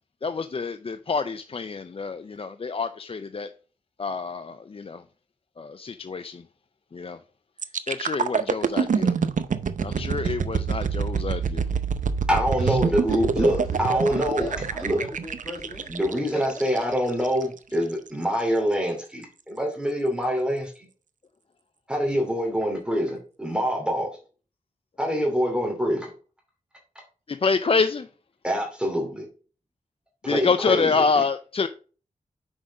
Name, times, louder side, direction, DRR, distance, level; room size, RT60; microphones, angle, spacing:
voice 1, 0.2-3.5 4.0-5.0 5.6-6.4 6.9-7.2 7.9-9.1 9.8-11.6 12.7-12.8 27.3-28.1 30.3-31.7, left 4 dB, 45° left, 0.4 m, -27 dB
sound 1, 7.6-17.4 17.9-18.1, right 6 dB, 70° right, 0.6 m, -26 dB
voice 2, 12.3-14.5 14.8-15.0 15.9-20.7 21.9-24.1 25.0-26.1 28.4-29.3 30.2-31.0, equal, 5° right, 2.6 m, -25 dB
voice 3, 13.1-15.9 16.3-16.4 16.7-16.9, left 1 dB, 20° left, 1.8 m, -37 dB
6.2 x 5.0 x 5.3 m
cardioid pair, 60°, 14 cm